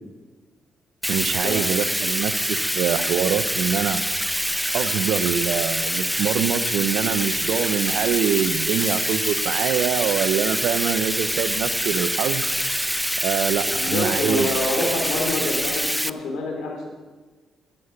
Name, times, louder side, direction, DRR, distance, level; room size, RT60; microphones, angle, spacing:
Bathtub (filling or washing), 1.0-16.1, equal, ahead, 0.4 m, -25 dB
voice 1, 1.1-4.0 4.7-12.4 13.2-14.5 14.8-15.1, right 8 dB, 80° right, 12 dB, 0.7 m, -25 dB
voice 2, 13.6-16.9, left 2 dB, 80° left, 1 dB, 3.0 m, -27 dB
11.5 x 9.9 x 5.8 m, 1.4 s
cardioid pair, 90°, 0 cm